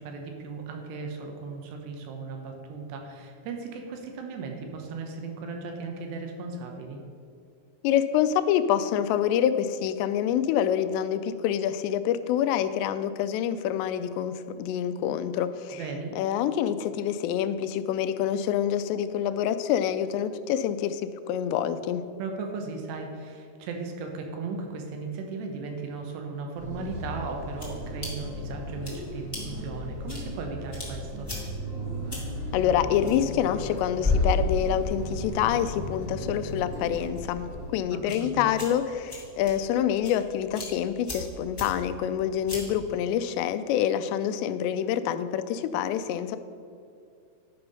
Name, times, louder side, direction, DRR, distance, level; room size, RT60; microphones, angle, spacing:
voice 1, 0.0-7.0 15.7-16.2 22.2-31.3 37.9-38.5, right 4 dB, 80° right, 3 dB, 3.1 m, -36 dB
voice 2, 7.8-15.8 16.2-22.0 32.5-37.5 37.7-46.4, left 10 dB, 90° left, 11 dB, 2.8 m, -26 dB
sound 1, 26.5-37.6, equal, 25° right, 2.3 m, -37 dB
sound 2, 26.8-42.9, left 2 dB, 20° left, 0.7 m, -36 dB
11.5 x 5.7 x 5.4 m, 2.4 s
omnidirectional pair, 4.9 m